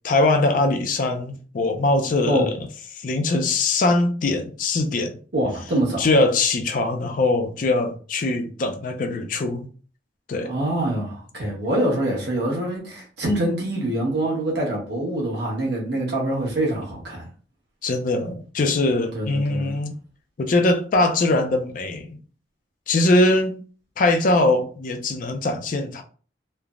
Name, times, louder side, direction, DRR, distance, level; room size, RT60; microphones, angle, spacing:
voice 1, 0.0-2.5 2.9-5.2 6.0-9.7 10.3-10.5 17.8-19.9 20.4-22.2 22.9-23.6 24.0-26.0, left 2 dB, 50° left, 0.4 m, -21 dB
voice 2, 5.3-6.1 10.4-17.2 19.1-19.8, right 1 dB, 70° right, 1.0 m, -25 dB
3.2 x 2.0 x 2.4 m
head